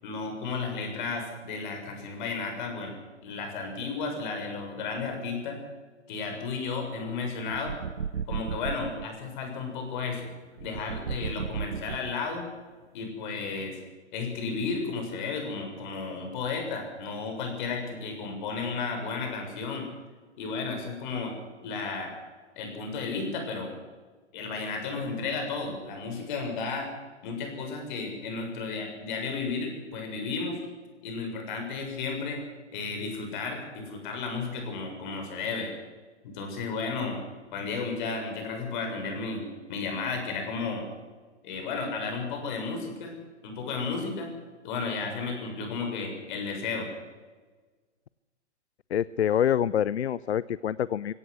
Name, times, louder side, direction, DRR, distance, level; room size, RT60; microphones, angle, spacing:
voice 1, 0.0-2.9 3.2-5.6 6.1-7.8 8.3-10.3 10.6-12.4 12.9-13.8 14.1-19.9 20.4-21.3 21.6-22.1 22.6-23.7 24.3-26.9 27.2-30.6 31.0-32.4 32.7-35.7 36.2-37.2 37.5-40.8 41.4-43.2 43.4-44.3 44.6-46.9, left 4 dB, 45° left, 3 dB, 7.0 m, -33 dB
sound 1, 7.5-9.1 10.6-12.4, right 7 dB, 80° right, 0.7 m, -34 dB
voice 2, 48.9-51.1, left 9 dB, 65° left, 20 dB, 0.6 m, -26 dB
22.0 x 17.0 x 8.2 m, 1.4 s
figure-of-eight pair, 115°, 35 cm